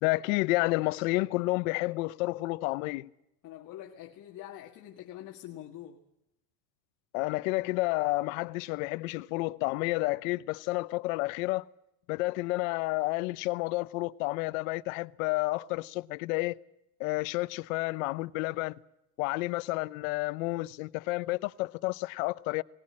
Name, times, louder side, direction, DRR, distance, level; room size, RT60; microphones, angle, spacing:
voice 1, 0.0-3.1 7.1-11.7 12.1-16.5 17.0-18.7 19.2-22.6, left 22 dB, 55° left, 0.8 m, -30 dB
voice 2, 3.4-6.0, left 12 dB, 40° left, 1.9 m, -45 dB
21.5 x 19.5 x 8.6 m
supercardioid pair, 140°, 49 cm